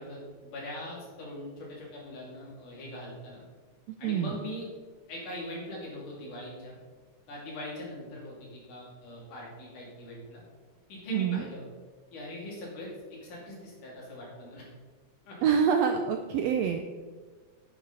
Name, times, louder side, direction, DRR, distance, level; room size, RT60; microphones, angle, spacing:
voice 1, 0.0-3.4 4.0-4.7 5.1-6.8 7.3-10.4 10.9-11.6 12.1-14.7 15.3-15.4, left 1 dB, 75° left, -4 dB, 4.4 m, -41 dB
voice 2, 3.9-4.4 11.1-11.4 15.4-16.8, right 7 dB, 85° right, 5 dB, 1.5 m, -26 dB
10.0 x 9.4 x 4.1 m, 1.4 s
omnidirectional pair, 3.6 m